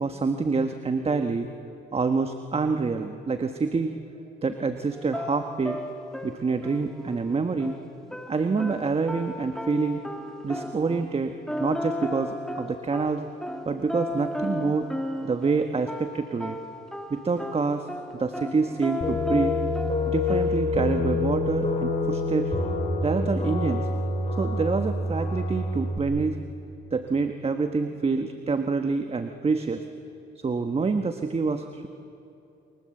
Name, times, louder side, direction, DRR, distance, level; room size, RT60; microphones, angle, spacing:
voice 1, 0.0-1.5 1.9-4.0 4.4-5.8 6.2-7.8 8.3-10.0 10.4-13.2 13.6-14.9 15.2-16.6 17.1-17.9 18.1-19.5 20.0-22.5 23.0-23.9 24.4-26.4 26.9-29.9 30.3-31.9, right 4 dB, 30° right, 7 dB, 1.3 m, -27 dB
sound 1, 4.9-11.2 11.5-15.6 15.9-20.6, left 1 dB, 5° left, 2.8 m, -35 dB
sound 2, 19.0-26.0, left 2 dB, 35° left, 5.4 m, -27 dB
30.0 x 24.5 x 7.8 m, 2.8 s
cardioid pair, 90°, 20 cm